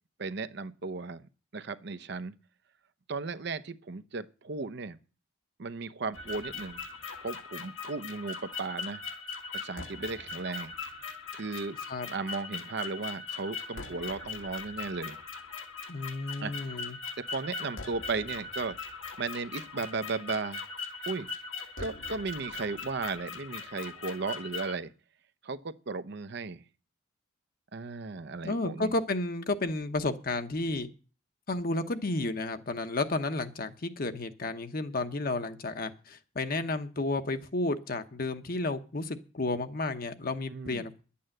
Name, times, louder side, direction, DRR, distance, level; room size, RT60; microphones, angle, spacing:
voice 1, 0.2-2.3 3.1-5.0 5.6-6.8 7.2-9.0 9.5-10.7 11.3-11.8 12.0-15.2 16.4-16.5 17.2-18.8 19.2-20.7 21.1-21.3 21.8-24.9 25.4-26.6 27.7-28.9 40.5-40.9, right 4 dB, 60° right, 0.7 m, -35 dB
sound 1, 6.1-24.8, left 4 dB, 80° left, 1.9 m, -40 dB
voice 2, 15.9-17.0 28.4-30.9 31.5-41.0, left 2 dB, 50° left, 1.0 m, -32 dB
11.0 x 8.6 x 7.7 m
head